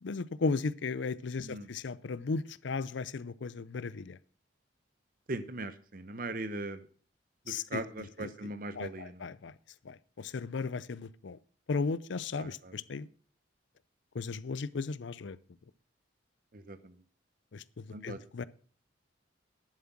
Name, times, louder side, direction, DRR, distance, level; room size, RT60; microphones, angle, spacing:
voice 1, 0.0-4.2 7.5-9.5 9.8-11.4 11.7-13.1 14.1-15.4 17.5-18.4, left 4 dB, 70° left, 0.5 m, -36 dB
voice 2, 5.3-6.8 7.5-9.2 12.4-12.7 16.5-16.8 17.9-18.2, right 2 dB, 45° right, 0.9 m, -39 dB
11.0 x 7.6 x 5.9 m
head